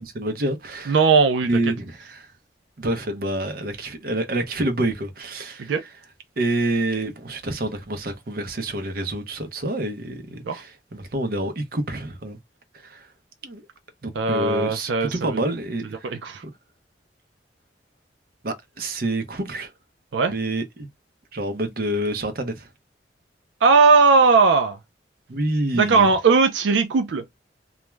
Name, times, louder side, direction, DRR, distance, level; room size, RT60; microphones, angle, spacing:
voice 1, 0.0-1.0 1.5-2.3 2.8-5.8 6.4-12.4 12.8-13.1 13.4-13.6 14.0-16.1 18.4-19.7 20.3-20.9 21.3-22.7 25.3-26.1, right 1 dB, 55° right, 0.6 m, -27 dB
voice 2, 0.9-1.5 5.7-5.8 10.5-10.6 14.2-15.4 16.0-16.4 20.1-20.3 23.6-24.8 25.7-27.2, right 4 dB, 90° right, 0.4 m, -18 dB
2.3 x 2.1 x 3.1 m
head